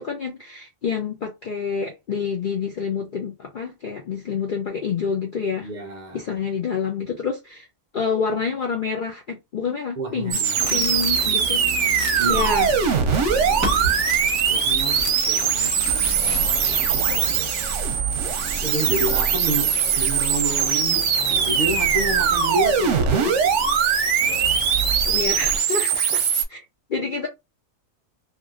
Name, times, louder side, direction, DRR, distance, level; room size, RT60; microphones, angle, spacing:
voice 1, 0.0-5.7 6.1-7.7 7.9-10.4 10.7-11.6 12.3-12.7 25.1-26.2 26.5-26.6 26.9-27.3, left 5 dB, 70° left, 0.4 m, -27 dB
voice 2, 5.6-6.2 10.0-10.6 12.2-12.6 13.1-14.0 14.5-16.3 18.6-23.5, right 2 dB, 85° right, 0.4 m, -30 dB
sound 1, 10.3-26.4, right 7 dB, 60° right, 0.8 m, -21 dB
sound 2, 10.6-17.0, right 2 dB, 15° right, 0.6 m, -33 dB
sound 3, 12.3-25.6, right 3 dB, 55° left, 1.1 m, -34 dB
2.9 x 2.6 x 2.5 m
omnidirectional pair, 1.6 m